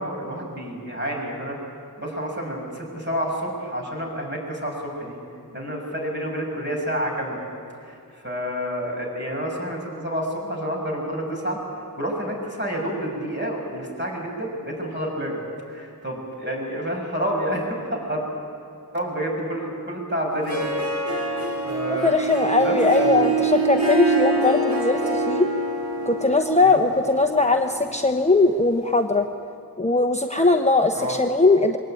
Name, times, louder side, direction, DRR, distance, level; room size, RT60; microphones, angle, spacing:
voice 1, 0.0-1.6 2.0-5.1 5.5-7.4 7.8-11.6 12.0-15.4 15.7-18.2 18.9-21.1 21.5-22.1 22.6-23.3 26.6-26.8 30.9-31.1, equal, 30° right, -1 dB, 7.0 m, -29 dB
Harp, 20.3-28.9, right 2 dB, 50° right, 4.3 m, -26 dB
voice 2, 22.0-25.5 26.1-29.3 29.8-31.8, left 3 dB, 20° left, 4 dB, 1.0 m, -20 dB
22.5 x 18.5 x 9.2 m, 2.4 s
wide cardioid pair, 65°, 38 cm